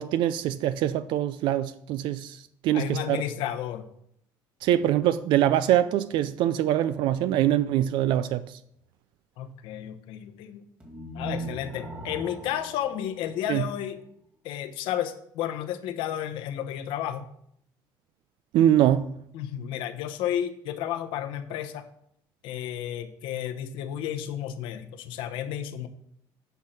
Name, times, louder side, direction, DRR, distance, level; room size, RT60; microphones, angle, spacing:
voice 1, 0.0-2.4 2.6-3.2 4.6-8.4 13.5-13.7 18.5-19.1, right 12 dB, 75° right, 0.4 m, -23 dB
voice 2, 2.7-3.8 9.4-10.6 11.1-14.0 14.4-17.2 19.3-21.8 22.4-25.9, left 10 dB, 85° left, 1.0 m, -32 dB
sound 1, 10.8-14.0, right 2 dB, 15° right, 2.2 m, -39 dB
9.4 x 5.6 x 5.8 m
cardioid pair, 135°, 8 cm